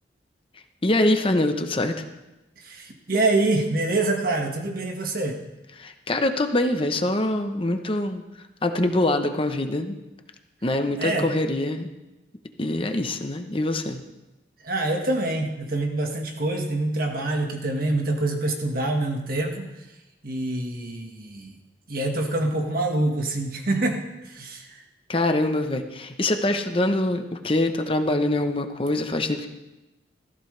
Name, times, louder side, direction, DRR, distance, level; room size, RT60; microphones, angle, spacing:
voice 1, 0.8-2.0 5.8-8.2 8.6-9.9 10.6-11.9 12.6-14.0 25.1-29.5, left 1 dB, 30° left, 6 dB, 0.9 m, -24 dB
voice 2, 2.6-5.4 11.0-11.3 14.6-19.7 20.2-21.5 21.9-24.8, right 2 dB, 55° right, 2 dB, 1.7 m, -26 dB
16.5 x 14.5 x 3.4 m, 1.0 s
head